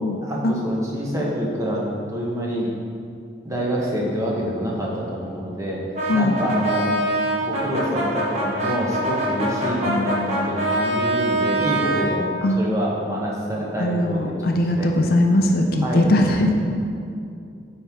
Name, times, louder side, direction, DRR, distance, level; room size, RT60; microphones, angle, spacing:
voice 1, 0.2-2.7 3.4-5.8 6.1-7.0 7.4-12.3 12.6-14.5 14.8-15.2 15.8-16.0, equal, 15° right, -4 dB, 1.0 m, -26 dB
Brass instrument, 5.9-12.1, right 1 dB, 35° right, 1.2 m, -24 dB
voice 2, 9.9-10.4 12.4-12.6 13.8-16.5, left 1 dB, 50° left, 3 dB, 0.5 m, -20 dB
9.6 x 4.4 x 3.6 m, 2.5 s
head